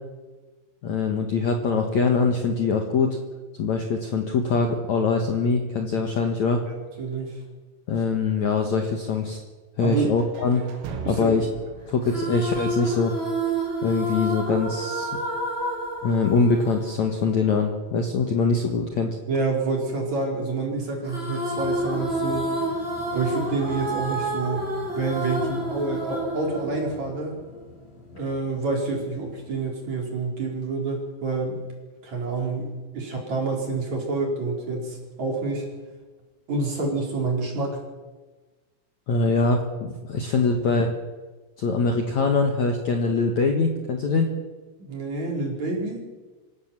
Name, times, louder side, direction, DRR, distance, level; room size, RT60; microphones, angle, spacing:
voice 1, 0.8-3.2 3.6-6.6 7.9-9.4 9.8-10.7 11.1-11.5 11.9-13.1 13.8-15.1 16.0-19.2 39.1-40.9 41.6-44.3, left 4 dB, 80° left, 3 dB, 1.6 m, -23 dB
voice 2, 6.6-7.4 9.8-10.2 11.0-11.3 19.3-22.6 23.1-24.7 24.9-27.4 28.1-31.6 32.0-35.7 36.5-37.8 44.8-46.0, right 3 dB, 35° right, 0 dB, 5.0 m, -28 dB
sound 1, 9.8-13.8, right 6 dB, 75° right, 4.5 m, -40 dB
sound 2, 12.0-17.6 21.1-27.5, right 1 dB, 10° right, 4.3 m, -29 dB
sound 3, 21.5-29.7, left 2 dB, 65° left, 6.0 m, -46 dB
26.0 x 16.5 x 7.5 m, 1.3 s
omnidirectional pair, 6.0 m